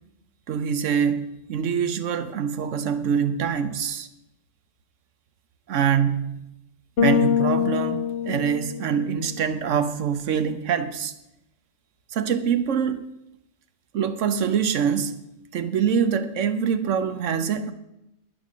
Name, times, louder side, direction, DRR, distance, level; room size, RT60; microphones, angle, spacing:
voice 1, 0.5-4.1 5.7-6.4 7.0-11.1 12.1-13.0 13.9-15.2 15.5-17.7, right 7 dB, 75° right, 1.1 m, -24 dB
Bass guitar, 7.0-9.3, left 8 dB, 60° left, 1.0 m, -24 dB
11.0 x 9.7 x 6.2 m
omnidirectional pair, 1.3 m